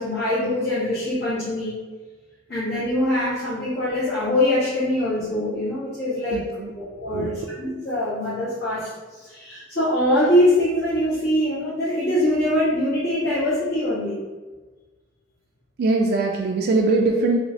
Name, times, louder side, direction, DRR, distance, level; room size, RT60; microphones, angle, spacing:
voice 1, 0.0-1.8 2.5-6.4 6.7-14.2, left 1 dB, 60° left, -14 dB, 1.4 m, -23 dB
voice 2, 6.3-7.3 15.8-17.4, right 3 dB, 55° right, 0 dB, 0.3 m, -22 dB
3.2 x 3.1 x 2.7 m, 1.3 s
head